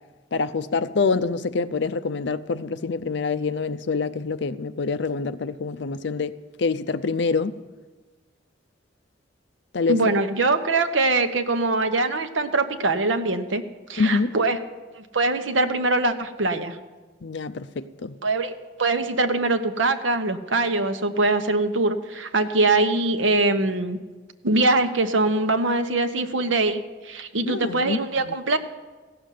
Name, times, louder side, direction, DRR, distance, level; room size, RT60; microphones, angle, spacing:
voice 1, 0.3-7.6 9.7-10.1 14.0-14.3 17.2-18.2 27.5-28.0 28.2-28.3, left 4 dB, 65° left, 0.5 m, -26 dB
voice 2, 9.9-13.6 13.9-14.6 14.9-16.8 18.2-18.5 18.8-24.0 24.4-28.6, right 2 dB, 75° right, 1.0 m, -23 dB
16.0 x 6.9 x 9.3 m
head